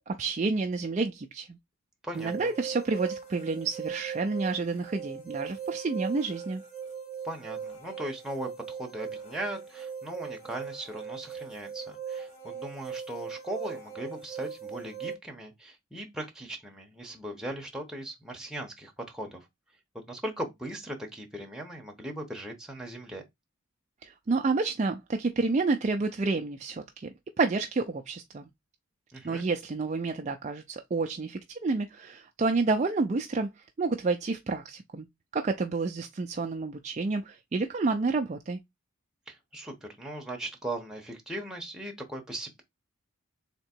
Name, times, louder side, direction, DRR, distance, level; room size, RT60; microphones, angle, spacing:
voice 1, 0.1-1.6 2.1-6.6 24.0-27.1 27.4-28.5 29.2-33.5 33.8-35.1 35.3-38.6, right 3 dB, 35° right, 0.4 m, -29 dB
voice 2, 2.0-2.5 7.2-19.5 20.1-23.2 29.1-29.4 39.3-42.6, right 1 dB, 5° right, 1.0 m, -39 dB
sound 1, 2.1-15.1, right 7 dB, 30° left, 1.6 m, -39 dB
3.6 x 2.9 x 4.4 m
head